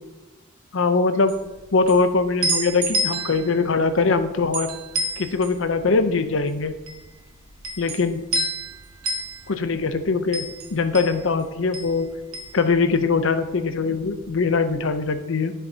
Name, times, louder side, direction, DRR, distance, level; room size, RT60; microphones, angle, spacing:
voice 1, 0.7-1.4 1.7-4.7 5.2-6.7 7.8-8.2 9.5-12.1 12.5-15.5, left 4 dB, 60° left, 9 dB, 0.7 m, -22 dB
sound 1, 1.2-13.5 13.7-14.8, right 2 dB, 85° right, 1.4 m, -30 dB
16.5 x 5.7 x 2.8 m, 1.1 s
head